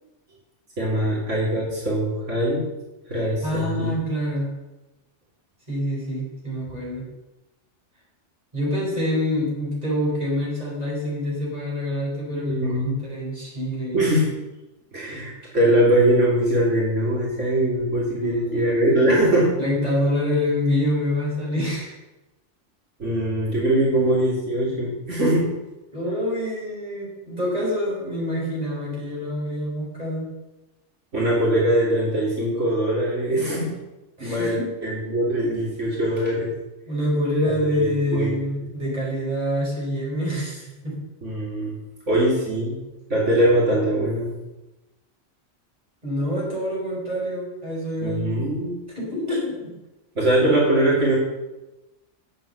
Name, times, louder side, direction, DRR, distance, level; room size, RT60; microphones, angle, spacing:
voice 1, 0.8-2.7 3.1-3.9 12.3-13.0 13.9-14.3 14.9-19.5 23.0-25.5 31.1-33.7 34.2-36.5 37.8-38.3 41.2-41.7 42.1-42.8 43.1-44.3 48.0-48.7 50.2-51.2, right 1 dB, 75° right, -5 dB, 3.0 m, -22 dB
voice 2, 3.1-4.5 5.7-7.1 8.5-14.1 18.2-19.2 19.6-21.9 25.9-30.4 34.2-34.7 36.9-41.0 46.0-48.4 49.0-49.7, left 1 dB, 30° right, -5 dB, 5.1 m, -26 dB
9.3 x 7.6 x 7.9 m, 1.0 s
omnidirectional pair, 1.3 m